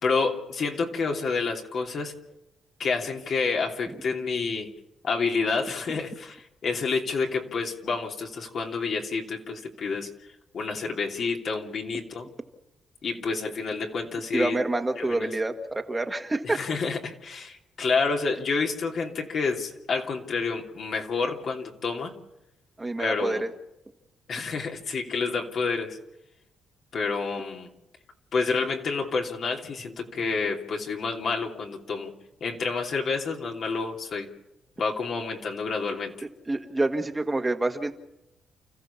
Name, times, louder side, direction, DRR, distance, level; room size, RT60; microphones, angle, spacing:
voice 1, 0.0-2.2 2.8-4.7 5.0-10.1 10.5-12.3 13.0-14.6 14.9-15.3 16.4-22.1 23.0-23.4 24.3-26.0 26.9-27.7 28.3-32.1 32.4-34.3 34.8-36.2, left 4 dB, 55° left, 1 dB, 2.9 m, -29 dB
voice 2, 14.3-16.6 22.8-23.5 36.5-37.9, right 2 dB, 20° right, 5 dB, 1.7 m, -27 dB
29.5 x 14.5 x 7.1 m, 0.92 s
cardioid pair, 90°, 0 cm